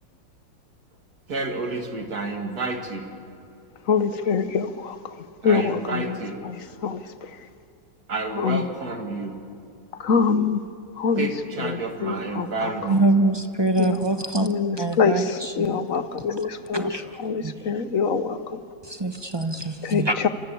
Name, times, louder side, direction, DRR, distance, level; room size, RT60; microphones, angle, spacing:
voice 1, 1.3-3.0 5.4-6.3 8.1-9.3 11.2-13.0, right 3 dB, 55° right, 4 dB, 2.7 m, -30 dB
voice 2, 3.9-4.9 5.4-6.6 6.8-7.0 8.3-8.7 10.0-10.6 11.0-11.3 11.6-13.0 13.8-14.0 14.4-18.6 19.8-20.3, left 5 dB, 55° left, 12 dB, 1.1 m, -25 dB
voice 3, 12.9-14.5 14.8-15.2 16.7-17.0 17.4-17.5 19.0-20.1, right 2 dB, 25° right, 7 dB, 0.6 m, -23 dB
27.5 x 25.5 x 8.6 m, 2.5 s
omnidirectional pair, 2.1 m